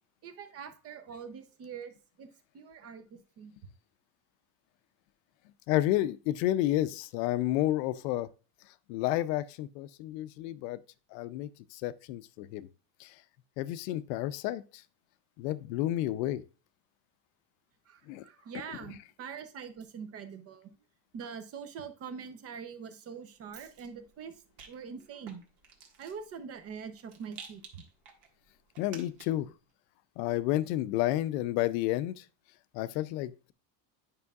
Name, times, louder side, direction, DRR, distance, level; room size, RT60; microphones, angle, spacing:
voice 1, 0.2-3.5 17.9-20.7 21.1-24.4 24.7-25.4 26.0-27.8, right 6 dB, 30° right, 0.7 m, -44 dB
voice 2, 5.7-8.3 8.9-10.8 11.1-12.7 13.0-13.1 13.6-14.8 15.4-16.4 18.1-18.2 28.8-29.5 30.2-32.2 32.7-33.5, left 14 dB, 80° left, 0.7 m, -31 dB
Rattle, 23.4-29.5, right 6 dB, 60° right, 1.8 m, -54 dB
9.6 x 5.6 x 2.4 m
cardioid pair, 155°, 49 cm